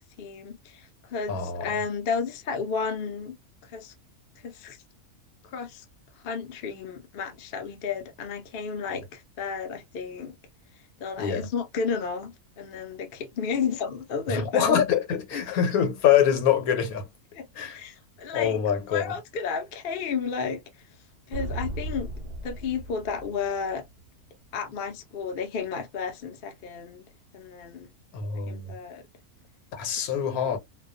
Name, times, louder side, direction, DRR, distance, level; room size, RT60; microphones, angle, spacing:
voice 1, 0.2-3.4 3.6-3.9 4.4-4.8 5.4-5.8 6.2-10.3 11.0-14.8 15.3-15.6 17.3-18.6 18.9-20.6 21.3-22.1 22.4-23.8 24.5-27.0 27.3-27.9 28.5-29.0 30.3-30.6, left 5 dB, 55° left, 0.6 m, -32 dB
voice 2, 1.3-1.7 11.2-11.5 14.3-17.0 17.6-17.8 18.3-19.1 28.1-28.7 29.7-30.6, left 8 dB, 80° left, 1.1 m, -24 dB
sound 1, 21.3-24.0, right 2 dB, 75° right, 0.4 m, -36 dB
2.3 x 2.2 x 2.4 m
omnidirectional pair, 1.5 m